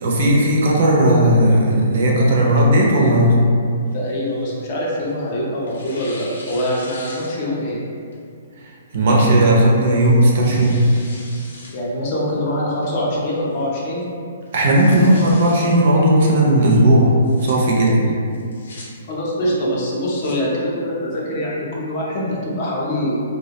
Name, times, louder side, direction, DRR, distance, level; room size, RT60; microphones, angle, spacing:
voice 1, 0.0-3.4 8.9-10.8 14.5-17.1 17.4-18.0, right 1 dB, 50° right, -3 dB, 0.5 m, -15 dB
Tearing, 3.9-5.2 5.7-7.7 8.1-8.2 9.1-9.4 10.0-11.8 12.1-12.2 12.8-13.2 13.6-13.7 14.0-14.1 14.5-15.8 17.1-17.5 18.3-18.9 19.9-20.4, left 2 dB, 85° left, 0.6 m, -40 dB
voice 2, 3.9-7.8 11.7-14.0 19.1-23.2, equal, 35° left, -5 dB, 0.5 m, -24 dB
2.2 x 2.0 x 2.8 m, 2.3 s
hypercardioid pair, 165°, 0 cm